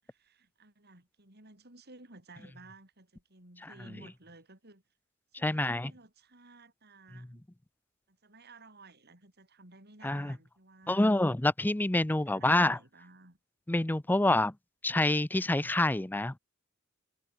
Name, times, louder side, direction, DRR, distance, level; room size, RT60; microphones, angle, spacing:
voice 1, 0.0-4.8 5.4-7.4 8.1-11.1 12.0-13.4, right 3 dB, 50° right, 6.4 m, -55 dB
voice 2, 5.4-5.9 10.0-10.3 10.9-12.8 13.7-14.5 14.8-16.4, left 1 dB, 10° left, 0.5 m, -27 dB
head